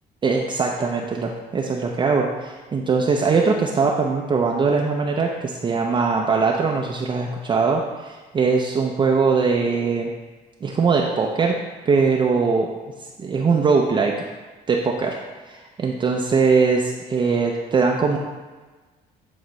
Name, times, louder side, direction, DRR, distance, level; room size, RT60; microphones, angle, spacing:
voice 1, 0.2-10.1 10.6-11.5 11.9-12.7 13.2-14.3 14.7-15.2 15.4-18.2, right 4 dB, 30° right, 0 dB, 0.5 m, -21 dB
8.0 x 3.8 x 3.1 m, 1.3 s
cardioid pair, 110°, 17 cm